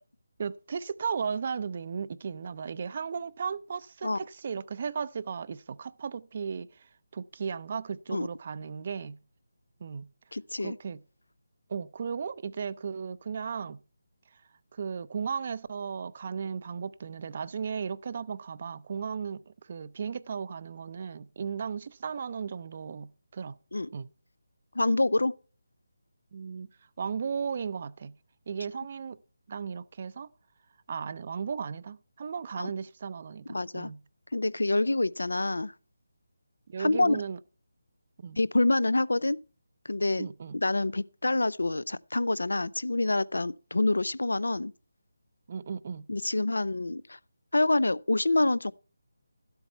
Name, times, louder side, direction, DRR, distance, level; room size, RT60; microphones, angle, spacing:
voice 1, 0.4-9.2 9.8-10.1 10.6-11.0 11.7-13.8 14.7-23.6 23.9-24.1 26.3-26.7 27.0-28.2 28.5-29.2 29.5-30.3 30.9-34.0 36.7-37.4 38.2-38.4 40.2-40.6 45.5-46.1, right 6 dB, 40° right, 0.4 m, -35 dB
voice 2, 10.3-10.8 23.7-23.9 24.7-25.3 32.6-32.7 33.5-33.9 34.3-35.7 36.8-37.2 38.4-39.4 39.9-40.3 40.6-44.7 46.1-47.2 47.5-48.7, left 2 dB, 80° left, 0.4 m, -26 dB
12.5 x 8.0 x 4.3 m
figure-of-eight pair, 160°, 0 cm